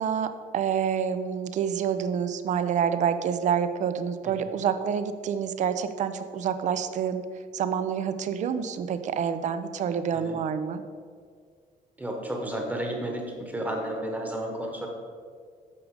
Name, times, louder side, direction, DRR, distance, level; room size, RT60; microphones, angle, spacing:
voice 1, 0.0-7.2 7.5-10.8, right 7 dB, 45° right, 11 dB, 0.5 m, -27 dB
voice 2, 12.0-14.9, right 1 dB, 10° right, 1 dB, 1.2 m, -32 dB
8.5 x 6.4 x 4.8 m, 2.1 s
cardioid pair, 170°, 17 cm